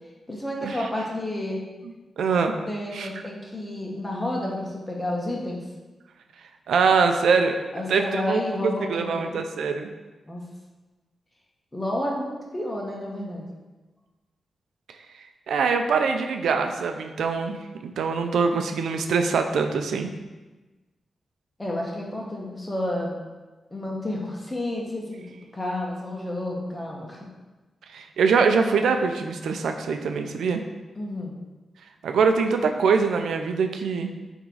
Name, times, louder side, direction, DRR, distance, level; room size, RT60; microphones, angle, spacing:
voice 1, 0.3-1.6 2.7-5.6 7.7-9.4 10.3-10.4 11.7-13.5 21.6-23.1 23.7-25.3 25.5-27.3 31.0-31.4, left 1 dB, 20° left, -2 dB, 1.8 m, -30 dB
voice 2, 2.2-2.5 2.9-3.1 6.7-7.5 7.9-9.9 15.5-20.1 27.9-30.6 32.0-34.1, right 5 dB, 90° right, 6 dB, 0.6 m, -23 dB
8.9 x 3.7 x 4.8 m, 1.2 s
cardioid pair, 80°, 0 cm